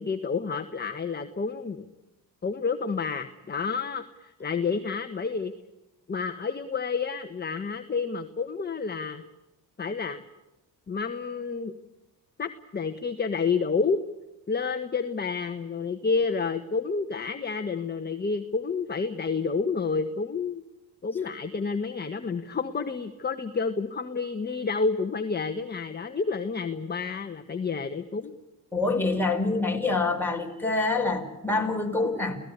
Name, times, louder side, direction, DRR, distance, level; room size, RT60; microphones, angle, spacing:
voice 1, 0.0-1.9 2.4-5.5 6.1-9.2 9.8-10.2 10.9-11.7 12.4-14.0 14.5-20.6 21.0-28.3, left 4 dB, 25° left, 8 dB, 1.5 m, -29 dB
voice 2, 28.7-32.4, left 3 dB, 5° left, 1 dB, 5.3 m, -26 dB
28.0 x 17.5 x 8.2 m, 0.98 s
supercardioid pair, 75°, 37 cm